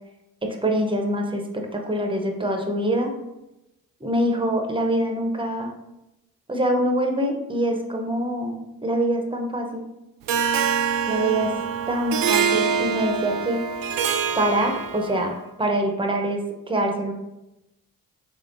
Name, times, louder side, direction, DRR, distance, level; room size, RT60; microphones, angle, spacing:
voice 1, 0.4-3.1 4.0-5.7 6.5-9.9 11.1-11.5 11.9-13.6 14.4-17.1, right 1 dB, 15° right, 3 dB, 0.6 m, -24 dB
Harp, 10.3-15.3, right 7 dB, 65° right, 0.5 m, -25 dB
3.5 x 3.4 x 2.5 m, 0.93 s
supercardioid pair, 65°, 37 cm